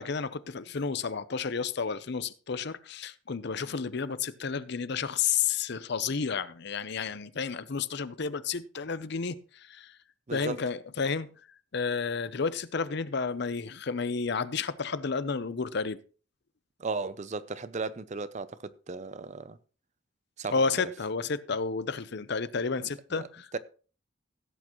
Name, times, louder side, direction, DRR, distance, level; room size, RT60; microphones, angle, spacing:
voice 1, 0.0-9.9 10.3-11.3 11.7-16.0 20.5-23.5, left 5 dB, 55° left, 0.6 m, -31 dB
voice 2, 16.8-19.6 20.4-20.9 23.2-23.3 23.5-23.6, right 4 dB, 35° right, 0.5 m, -36 dB
16.5 x 8.5 x 3.0 m
head